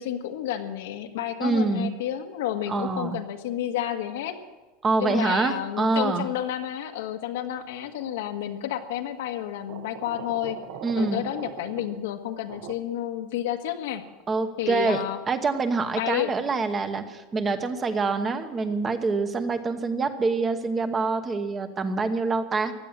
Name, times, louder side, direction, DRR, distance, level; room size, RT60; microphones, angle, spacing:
voice 1, 0.0-4.4 5.0-10.6 11.0-14.0 14.6-15.2 16.0-16.3, left 11 dB, 90° left, 5 dB, 1.6 m, -30 dB
voice 2, 1.4-1.9 2.7-3.2 4.8-6.3 10.8-11.2 14.3-22.7, right 4 dB, 15° right, 9 dB, 1.0 m, -26 dB
sound 1, 8.0-8.4 9.7-12.7, right 9 dB, 55° right, 1.2 m, -41 dB
16.0 x 11.0 x 7.4 m, 1.2 s
supercardioid pair, 170°, 0 cm